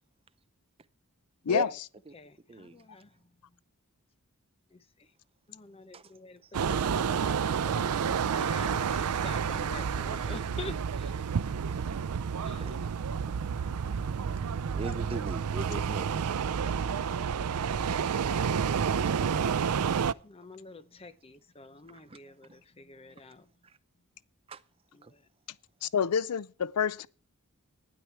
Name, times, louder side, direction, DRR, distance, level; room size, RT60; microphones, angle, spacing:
voice 1, 2.1-3.3 4.7-5.1 5.5-11.3 12.4-12.8 16.1-17.8 19.8-23.5 24.9-25.2, left 3 dB, 25° left, 0.7 m, -48 dB
sound 1, 6.5-20.1, right 6 dB, 85° right, 0.5 m, -30 dB
voice 2, 14.7-16.4 21.9-22.2 24.5-24.6 25.0-25.1, right 2 dB, 25° right, 0.6 m, -40 dB
voice 3, 25.8-27.1, left 7 dB, 90° left, 0.5 m, -27 dB
12.0 x 10.0 x 4.6 m
head